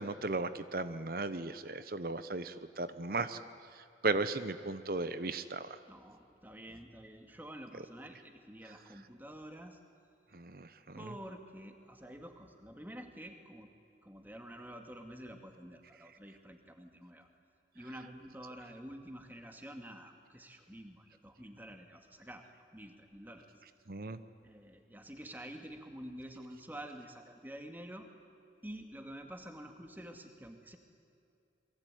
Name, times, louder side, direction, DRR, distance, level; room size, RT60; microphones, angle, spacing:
voice 1, 0.0-3.4 4.0-5.8 10.3-11.1 23.9-24.2, right 3 dB, 50° right, 12 dB, 0.9 m, -36 dB
voice 2, 5.9-9.8 11.0-13.7 14.0-17.3 17.7-22.5 22.7-23.5 24.4-28.1 28.6-30.8, right 1 dB, 10° right, 5 dB, 2.2 m, -48 dB
28.0 x 23.0 x 9.2 m, 2.5 s
head